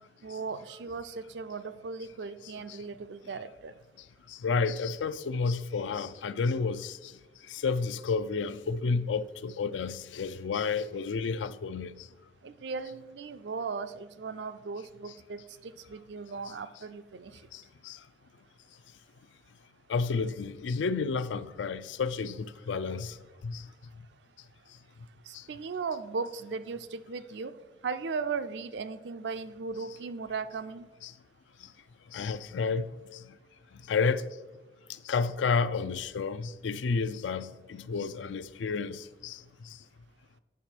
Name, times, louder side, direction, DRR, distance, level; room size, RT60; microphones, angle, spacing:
voice 1, 0.2-3.7 12.4-17.4 25.2-27.6 27.8-30.9, right 5 dB, 75° right, 0.4 m, -37 dB
voice 2, 4.4-7.0 7.5-11.9 17.5-17.6 17.9-18.0 19.9-23.1 23.4-23.6 31.0-31.1 32.1-32.9 33.9-34.3 35.1-39.4, left 4 dB, 90° left, 0.4 m, -30 dB
8.3 x 5.8 x 4.4 m
head